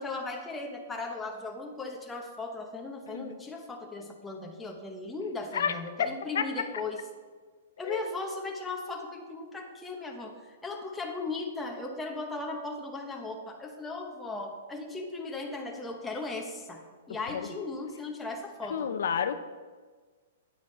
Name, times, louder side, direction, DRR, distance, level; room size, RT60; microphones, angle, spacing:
voice 1, 0.0-7.0 7.8-19.0, left 3 dB, 5° left, 1 dB, 0.8 m, -37 dB
voice 2, 5.5-6.1 6.3-6.4 7.8-8.1 17.3-17.5 18.7-19.4, left 7 dB, 75° left, 10 dB, 0.6 m, -30 dB
9.4 x 9.2 x 3.2 m, 1.5 s
hypercardioid pair, 170°, 0 cm